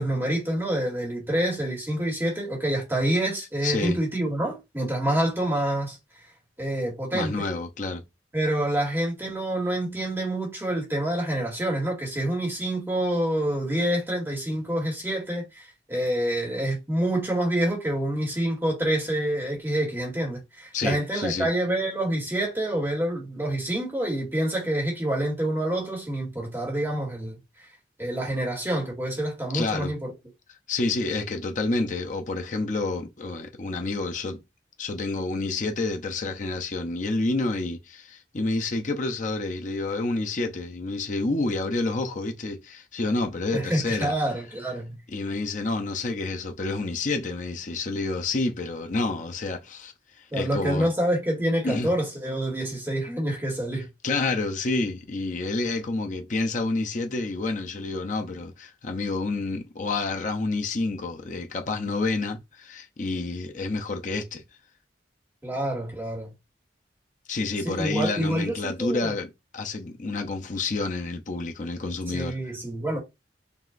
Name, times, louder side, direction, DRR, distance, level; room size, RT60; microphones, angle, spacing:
voice 1, 0.0-6.0 6.6-7.5 8.3-27.4 28.0-30.1 43.5-44.9 50.3-53.8 65.4-66.3 67.6-69.1 72.1-73.0, right 1 dB, 15° right, 1.9 m, -27 dB
voice 2, 3.6-4.0 7.1-8.0 20.7-21.5 29.5-29.9 30.7-34.4 34.8-44.1 45.1-50.9 51.6-51.9 54.0-64.4 67.3-72.4, left 3 dB, 45° left, 0.7 m, -29 dB
5.3 x 2.9 x 2.5 m
head